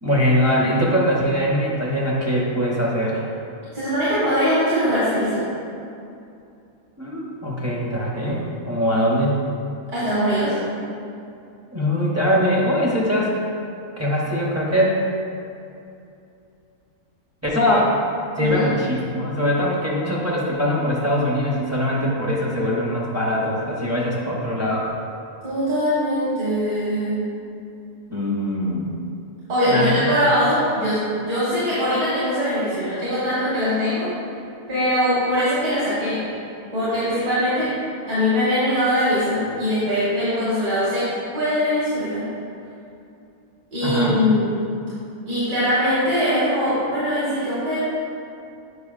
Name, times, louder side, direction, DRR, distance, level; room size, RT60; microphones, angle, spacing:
voice 1, 0.0-3.3 7.0-9.4 11.7-13.4 14.0-15.0 17.4-17.9 18.3-24.9 28.1-28.9 29.7-30.1 43.8-44.2, equal, 20° right, -5 dB, 0.4 m, -22 dB
voice 2, 3.7-5.4 9.9-10.6 18.4-18.7 25.4-27.3 29.5-34.1 34.7-36.2 36.7-37.8 38.1-42.3 43.7-44.5 45.3-47.8, equal, 75° right, -11 dB, 2.1 m, -21 dB
8.2 x 5.2 x 2.5 m, 2.6 s
omnidirectional pair, 1.7 m